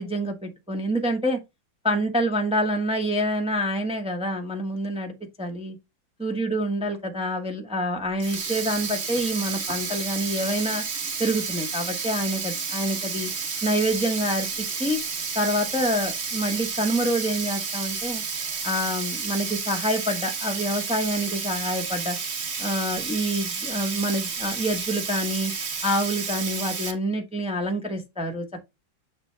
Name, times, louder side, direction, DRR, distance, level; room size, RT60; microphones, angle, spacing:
voice 1, 0.0-1.4 1.8-5.8 6.2-10.8 11.2-13.3 13.6-14.5 14.8-15.0 15.3-18.2 18.6-22.2 22.6-25.5 25.8-28.4, equal, 5° right, 0.8 m, -27 dB
Sink (filling or washing), 8.1-26.9, right 5 dB, 40° right, 1.2 m, -31 dB
9.4 x 3.3 x 3.4 m
omnidirectional pair, 2.1 m